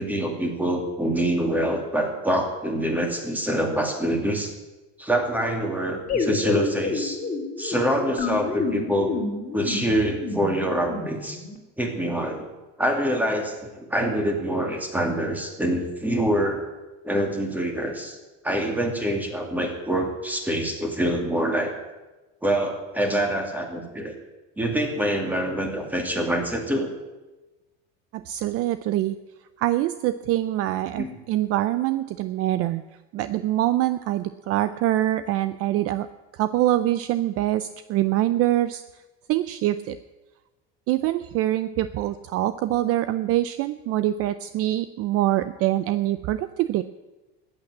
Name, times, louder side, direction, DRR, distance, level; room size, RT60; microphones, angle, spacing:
voice 1, 0.0-4.5 5.0-7.2 7.6-9.1 9.5-11.4 11.8-12.5 12.8-16.6 17.0-18.2 18.4-21.7 22.4-24.1 24.6-26.9 31.0-31.2, right 1 dB, 5° right, 3 dB, 2.5 m, -25 dB
sound 1, 6.1-11.6, left 4 dB, 25° left, 2.6 m, -29 dB
voice 2, 28.1-29.2 29.6-32.8 33.1-36.1 36.3-38.8 39.3-40.0 40.9-46.8, right 14 dB, 45° right, 13 dB, 0.6 m, -24 dB
14.5 x 8.9 x 9.9 m, 1.1 s
cardioid pair, 150°, 33 cm